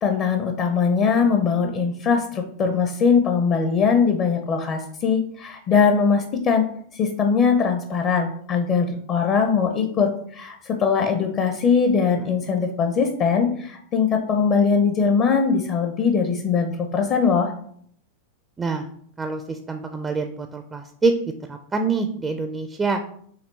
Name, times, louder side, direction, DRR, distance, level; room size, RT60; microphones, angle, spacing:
voice 1, 0.0-6.6 7.0-17.5, left 5 dB, 35° left, 5 dB, 0.5 m, -21 dB
voice 2, 18.6-18.9 19.2-21.1 21.5-23.0, right 4 dB, 15° right, 6 dB, 0.4 m, -25 dB
4.8 x 3.1 x 3.1 m, 0.63 s
figure-of-eight pair, 90°, 0 cm